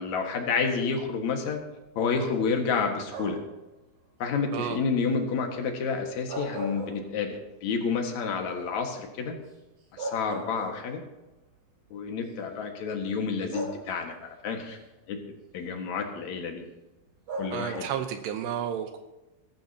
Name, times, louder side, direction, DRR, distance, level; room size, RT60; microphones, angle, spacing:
voice 1, 0.0-1.6 2.0-3.4 4.2-7.3 7.6-9.4 9.9-11.0 11.9-14.8 15.1-15.2 15.5-16.6 17.4-17.8, left 5 dB, 55° left, 3 dB, 2.3 m, -29 dB
sound 1, 3.1-3.6 6.1-7.5 7.9-8.0 9.5-9.6 10.0-11.1 12.1-12.3 13.5-14.2 17.3-18.1, right 1 dB, 55° right, 5.0 m, -37 dB
voice 2, 17.5-19.0, right 9 dB, 80° right, 6 dB, 2.9 m, -32 dB
21.5 x 12.0 x 2.8 m, 1.0 s
omnidirectional pair, 5.1 m